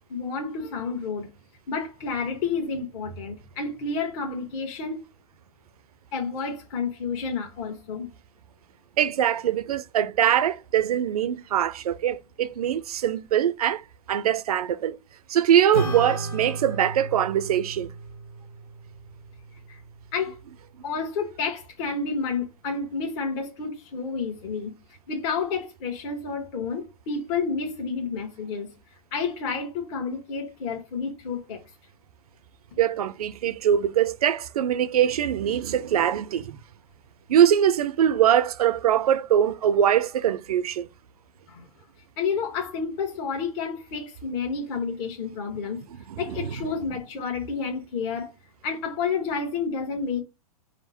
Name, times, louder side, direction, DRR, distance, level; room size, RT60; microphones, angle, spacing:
voice 1, 0.1-1.3 1.7-5.0 6.1-8.1 19.7-19.8 20.1-20.4 20.8-24.7 25.1-28.7 29.1-31.6 41.5-41.7 42.2-45.8 46.2-48.3 48.6-50.2, left 5 dB, 50° left, 1.2 m, -30 dB
voice 2, 9.0-13.8 14.1-15.0 15.3-17.9 32.8-36.6 37.3-40.9 46.1-46.5, right 10 dB, 80° right, 0.5 m, -22 dB
Acoustic guitar / Strum, 15.7-20.5, right 2 dB, 80° left, 1.7 m, -35 dB
4.9 x 2.0 x 4.2 m
hypercardioid pair, 125°, 19 cm